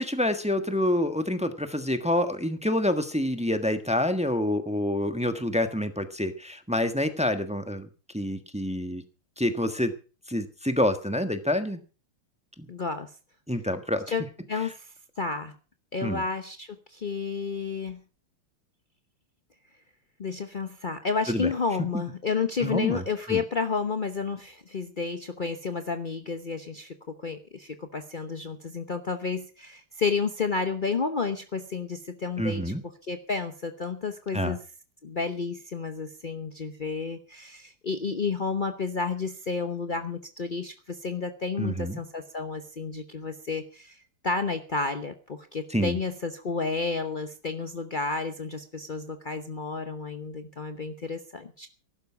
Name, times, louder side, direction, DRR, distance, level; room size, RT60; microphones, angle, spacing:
voice 1, 0.0-7.9 8.1-9.0 9.4-9.9 10.3-11.8 12.6-12.7 13.5-14.0 16.0-16.2 21.3-21.5 22.6-23.0 23.3-23.4 32.4-32.8 34.3-34.6 41.6-42.0 45.7-46.0, left 1 dB, 5° right, 8 dB, 1.0 m, -27 dB
voice 2, 12.7-13.1 14.1-15.5 15.9-18.0 20.2-32.7 33.1-34.6 35.0-44.0 44.2-51.7, left 4 dB, 65° left, 8 dB, 0.4 m, -31 dB
15.0 x 12.0 x 5.8 m, 0.36 s
omnidirectional pair, 2.4 m